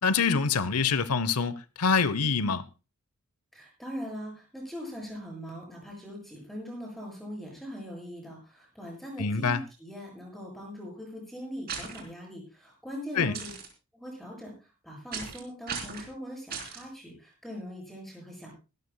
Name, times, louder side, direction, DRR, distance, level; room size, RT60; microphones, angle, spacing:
voice 1, 0.0-2.7 9.2-9.6 13.2-13.3, left 5 dB, 85° left, 0.9 m, -25 dB
voice 2, 3.5-13.6 13.9-18.5, equal, ahead, 7.6 m, -41 dB
sound 1, 11.7-12.0 13.3-13.7 15.1-15.4 15.7-16.1 16.5-16.8, right 6 dB, 45° right, 3.7 m, -36 dB
22.5 x 13.5 x 2.3 m
head